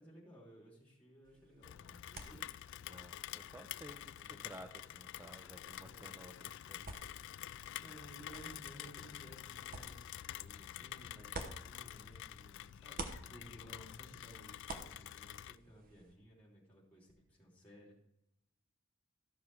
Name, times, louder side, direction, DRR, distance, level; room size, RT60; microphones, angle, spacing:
voice 1, 0.0-2.4 3.9-4.5 5.7-6.3 7.8-18.0, right 1 dB, 5° left, -4 dB, 3.3 m, -58 dB
sound 1, 1.2-12.4 12.7-16.1, right 3 dB, 45° right, 0.9 m, -53 dB
Rain, 1.6-15.6, left 12 dB, 60° left, 0.3 m, -48 dB
voice 2, 2.8-6.9 13.5-13.6, right 1 dB, 10° right, 6 dB, 0.5 m, -55 dB
13.5 x 6.1 x 4.7 m, 0.86 s
head